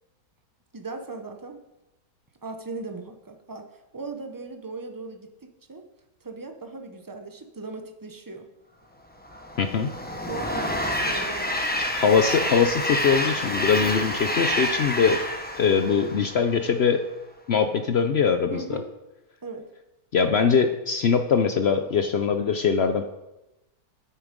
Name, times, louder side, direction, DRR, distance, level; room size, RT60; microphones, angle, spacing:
voice 1, 0.7-1.6 2.4-5.8 6.2-8.5 10.3-11.8 18.5-18.9 19.4-19.7, right 3 dB, 25° right, 5 dB, 0.4 m, -38 dB
Train, 9.2-16.7, left 1 dB, 10° left, 0.8 m, -28 dB
voice 2, 9.6-9.9 11.8-15.2 15.6-17.0 17.5-18.8 20.1-23.0, left 6 dB, 70° left, 7 dB, 0.6 m, -22 dB
9.4 x 8.8 x 5.2 m, 0.97 s
omnidirectional pair, 1.8 m